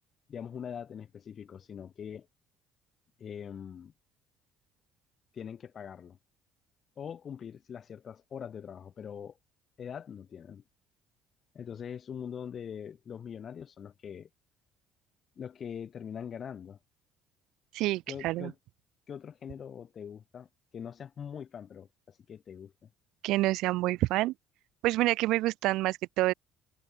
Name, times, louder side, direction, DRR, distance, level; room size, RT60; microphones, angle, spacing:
voice 1, 0.3-2.3 3.2-3.9 5.3-6.2 7.0-9.4 9.8-10.6 11.5-14.3 15.4-16.8 18.1-18.6 19.1-20.5 20.7-22.9, left 8 dB, 45° left, 2.0 m, -42 dB
voice 2, 17.7-18.5 23.2-24.3 24.8-26.3, right 17 dB, 75° right, 0.3 m, -27 dB
supercardioid pair, 90°, 0 cm